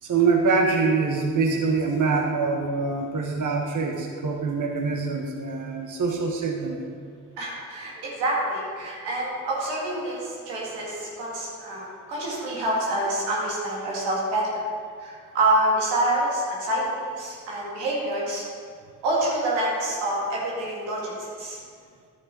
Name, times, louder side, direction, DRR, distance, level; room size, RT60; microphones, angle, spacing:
voice 1, 0.0-7.0, right 4 dB, 50° right, 2 dB, 1.3 m, -24 dB
voice 2, 7.4-14.6 15.0-18.4 19.0-21.6, right 1 dB, 90° right, -4 dB, 2.3 m, -27 dB
11.0 x 6.6 x 5.4 m, 2.1 s
supercardioid pair, 45°, 40 cm